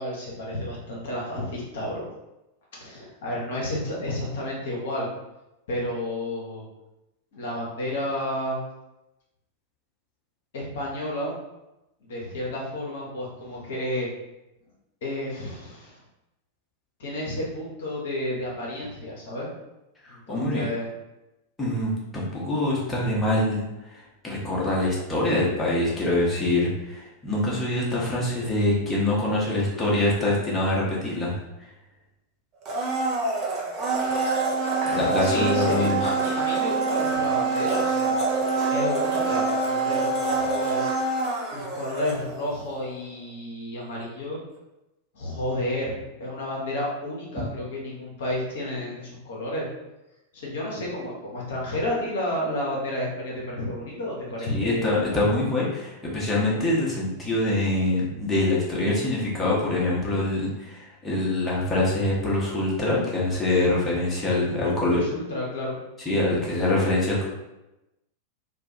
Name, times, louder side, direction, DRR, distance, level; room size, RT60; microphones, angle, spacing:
voice 1, 0.0-2.1 2.8-5.1 5.7-6.6 7.3-8.6 10.5-11.4 12.0-14.1 15.0-16.0 17.0-19.5 20.1-20.9 29.7-29.8 34.0-34.2 35.2-38.2 38.7-40.9 41.5-44.4 45.1-49.7 50.3-55.0 64.2-65.8, left 1 dB, 60° left, -4 dB, 0.6 m, -31 dB
voice 2, 20.0-20.7 21.6-31.3 34.8-36.0 54.5-65.0 66.1-67.2, left 1 dB, 15° left, -6 dB, 0.7 m, -24 dB
Domestic sounds home sounds, 32.6-42.6 42.9-43.0, right 3 dB, 35° right, 0.5 m, -25 dB
2.2 x 2.2 x 2.7 m, 0.96 s
figure-of-eight pair, 90°, 0 cm